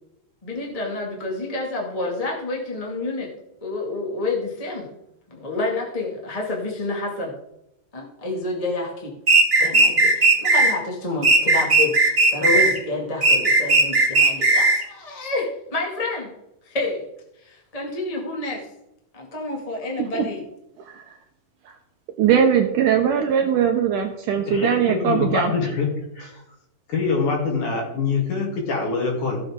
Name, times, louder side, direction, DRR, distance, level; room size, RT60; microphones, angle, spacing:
voice 1, 0.4-3.3 3.6-4.9 5.3-7.3 7.9-9.1 9.6-16.3 16.6-17.0 17.4-18.7 19.1-20.4, left 2 dB, 15° left, -2 dB, 1.3 m, -28 dB
sound 1, 9.3-10.7 11.2-12.8 13.2-14.8, right 3 dB, 25° right, 2.1 m, -16 dB
voice 2, 22.2-25.5, right 8 dB, 75° right, 4 dB, 2.1 m, -20 dB
voice 3, 24.4-25.9 26.1-26.4 26.9-29.4, left 4 dB, 55° left, -1 dB, 3.9 m, -24 dB
15.5 x 7.6 x 3.7 m, 0.87 s
omnidirectional pair, 4.3 m